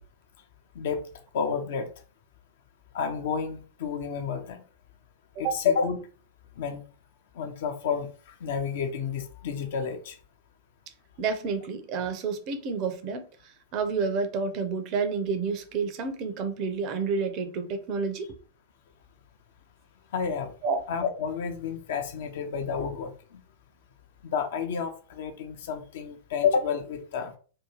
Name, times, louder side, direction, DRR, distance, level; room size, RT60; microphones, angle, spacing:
voice 1, 1.3-1.9 2.9-4.6 5.4-6.0 6.6-6.8 7.4-8.1 8.4-10.2 20.1-20.5 20.9-23.1 24.2-27.3, left 6 dB, 55° left, 0.4 m, -30 dB
voice 2, 11.2-18.3 20.6-20.8, right 5 dB, 40° right, 0.4 m, -29 dB
2.6 x 2.2 x 2.9 m
figure-of-eight pair, 90°, 0 cm